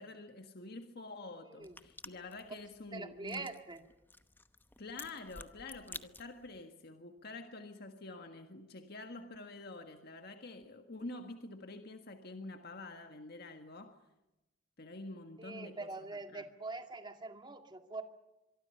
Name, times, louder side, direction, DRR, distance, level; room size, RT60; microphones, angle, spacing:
voice 1, 0.0-3.5 4.8-14.0 14.8-16.5, left 2 dB, 55° left, 6 dB, 1.7 m, -47 dB
voice 2, 1.4-1.8 2.9-3.8 15.4-18.0, right 3 dB, 25° right, 6 dB, 2.1 m, -44 dB
sound 1, 1.6-6.6, left 3 dB, 10° left, 0.9 m, -52 dB
25.5 x 23.5 x 5.6 m, 0.95 s
head